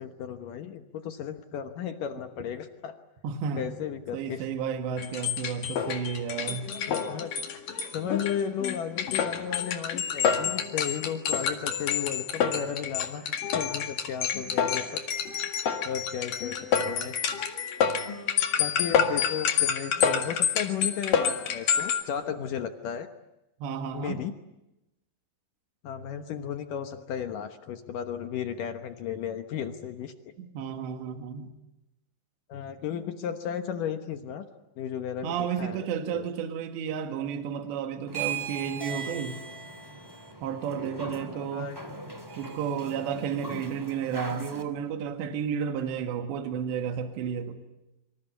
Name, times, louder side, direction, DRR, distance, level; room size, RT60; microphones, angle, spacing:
voice 1, 0.0-3.0 3.6-4.5 6.9-7.3 7.9-15.0 15.8-17.2 18.6-23.1 23.9-24.3 25.8-30.1 32.5-34.5 34.8-36.3 41.3-41.8, left 8 dB, 75° left, 8 dB, 2.0 m, -34 dB
voice 2, 3.2-3.6 4.1-6.7 23.6-24.2 30.4-31.5 35.2-39.4 40.4-41.7 42.4-47.6, right 7 dB, 70° right, 6 dB, 3.9 m, -32 dB
sound 1, 5.0-22.0, left 7 dB, 55° left, 3.0 m, -28 dB
sound 2, 38.1-44.6, right 4 dB, 15° right, 0.9 m, -38 dB
27.0 x 25.5 x 8.2 m, 0.92 s
omnidirectional pair, 5.5 m